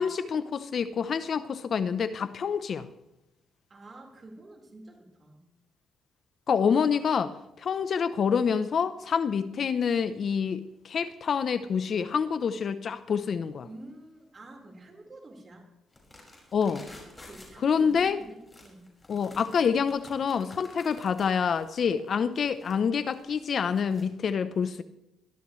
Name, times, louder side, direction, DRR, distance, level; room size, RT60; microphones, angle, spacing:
voice 1, 0.0-2.9 6.5-13.7 16.5-16.9 17.6-18.2 19.1-24.8, left 6 dB, 55° left, 12 dB, 0.7 m, -27 dB
voice 2, 3.7-5.4 13.6-15.7 17.2-18.9, right 2 dB, 35° right, 2 dB, 4.3 m, -48 dB
sound 1, 15.9-24.0, left 2 dB, 20° left, 5.6 m, -51 dB
22.0 x 13.0 x 3.2 m, 0.90 s
cardioid pair, 90°, 0 cm